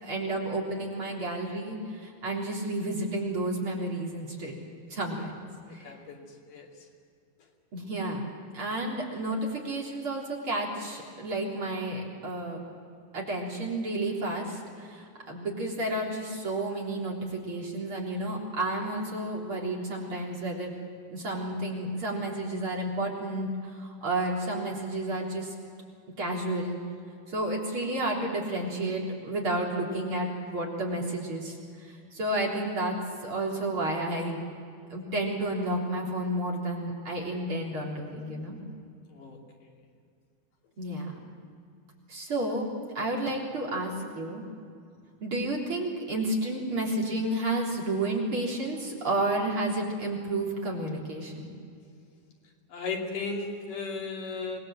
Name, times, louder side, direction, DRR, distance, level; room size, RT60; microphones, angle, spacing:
voice 1, 0.0-4.6 4.9-5.3 5.7-5.9 7.7-8.2 8.5-12.6 13.1-20.7 21.1-23.5 23.8-25.5 26.2-26.8 27.3-31.6 32.1-33.0 33.2-34.4 34.9-38.6 40.8-41.1 42.1-42.7 42.9-44.4 45.2-51.5, right 1 dB, 40° right, -2 dB, 4.4 m, -31 dB
voice 2, 5.8-6.2 6.5-6.7 39.2-39.4 52.7-54.6, left 4 dB, 75° left, 0 dB, 4.4 m, -35 dB
26.0 x 20.5 x 7.7 m, 2.3 s
omnidirectional pair, 3.7 m